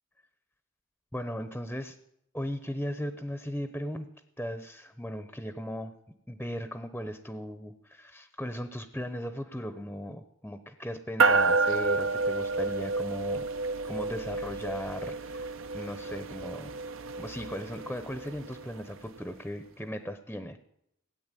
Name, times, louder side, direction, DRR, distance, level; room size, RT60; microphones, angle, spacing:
voice 1, 1.1-2.0 2.3-4.1 4.4-5.9 6.3-13.5 13.9-16.7 17.2-20.6, equal, 5° left, 10 dB, 0.8 m, -37 dB
sound 1, 11.2-18.9, right 3 dB, 75° right, 1.0 m, -30 dB
17.5 x 8.7 x 9.1 m, 0.80 s
head